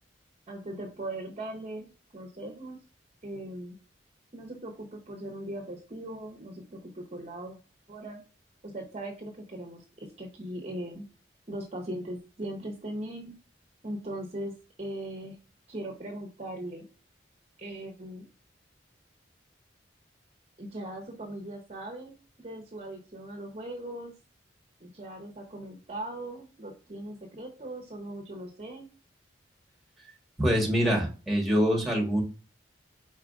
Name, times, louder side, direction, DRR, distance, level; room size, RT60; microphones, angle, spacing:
voice 1, 0.5-2.8 3.2-3.8 4.3-7.6 7.9-8.2 8.6-11.1 11.5-13.3 13.8-14.5 14.8-15.4 15.7-16.9 17.6-18.3 20.6-24.1 24.8-28.9, right 1 dB, 35° right, 3 dB, 0.8 m, -39 dB
voice 2, 30.4-32.2, equal, ahead, -1 dB, 1.4 m, -25 dB
4.8 x 4.3 x 2.4 m, 0.34 s
head